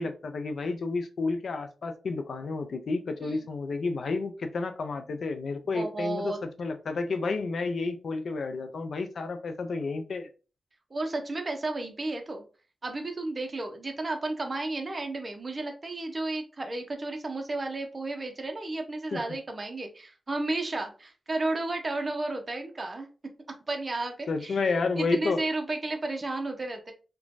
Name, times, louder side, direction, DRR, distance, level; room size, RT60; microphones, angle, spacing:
voice 1, 0.0-6.3 6.6-10.3 19.1-19.2 24.3-25.4, left 3 dB, 75° left, 0.4 m, -30 dB
voice 2, 5.7-6.4 10.9-12.4 12.8-23.1 23.7-24.6 25.0-26.9, right 2 dB, 40° right, 0.6 m, -33 dB
3.1 x 2.2 x 2.4 m
cardioid pair, 70°, 0 cm